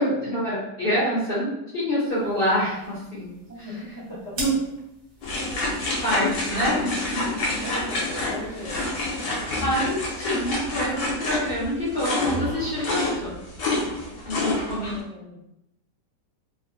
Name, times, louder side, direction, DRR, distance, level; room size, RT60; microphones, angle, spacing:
voice 1, 0.0-3.3 3.6-3.7 4.4-4.5 6.0-7.2 9.6-13.3 14.2-15.0, equal, 45° left, -10 dB, 0.7 m, -26 dB
sound 1, 2.1-8.9, right 1 dB, 60° right, 1.3 m, -43 dB
voice 2, 3.5-4.5 7.6-9.0 14.4-15.4, equal, 25° right, -9 dB, 0.5 m, -38 dB
sound 2, 5.2-15.0, left 2 dB, 75° left, 1.3 m, -28 dB
3.4 x 2.1 x 2.5 m, 0.88 s
omnidirectional pair, 1.9 m